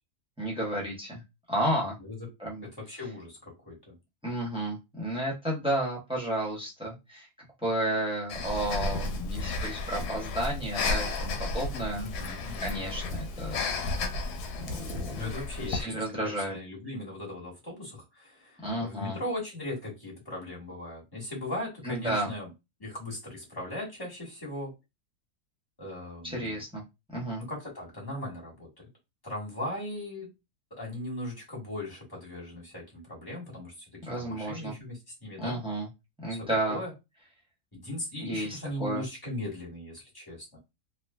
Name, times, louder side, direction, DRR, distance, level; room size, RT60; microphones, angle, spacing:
voice 1, 0.4-1.2 1.5-2.0 2.4-2.7 4.2-7.3 7.6-12.0 12.6-13.7 14.7-15.3 15.7-16.5 18.6-19.2 21.8-22.3 26.2-26.8 27.1-27.4 34.0-34.7 35.4-35.9 36.2-36.8 38.2-39.0, right 1 dB, 5° right, -3 dB, 0.7 m, -32 dB
voice 2, 2.8-3.9 11.9-12.8 15.1-16.0 16.4-22.5 22.8-24.7 25.8-26.6 27.4-28.9 29.2-30.3 30.7-35.6 36.3-36.9 37.7-40.6, left 1 dB, 15° left, -4 dB, 1.3 m, -38 dB
Breathing, 8.3-15.8, left 3 dB, 85° left, 1.1 m, -33 dB
3.1 x 2.4 x 2.2 m, 0.24 s
omnidirectional pair, 1.6 m